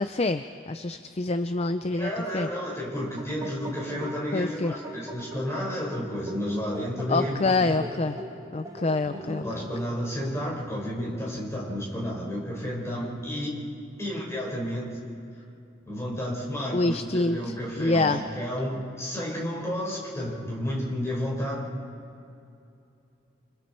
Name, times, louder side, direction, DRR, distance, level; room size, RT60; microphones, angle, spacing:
voice 1, 0.0-2.5 4.3-4.7 7.1-8.2 8.5-9.6 16.7-17.4 17.8-18.2, left 2 dB, 35° left, 10 dB, 0.5 m, -26 dB
voice 2, 2.0-7.7 9.0-13.6 14.0-15.0 15.9-21.8, equal, 15° left, -4 dB, 5.2 m, -31 dB
sound 1, 2.8-10.3, equal, 20° right, 2.0 m, -40 dB
30.0 x 26.5 x 4.6 m, 2.6 s
head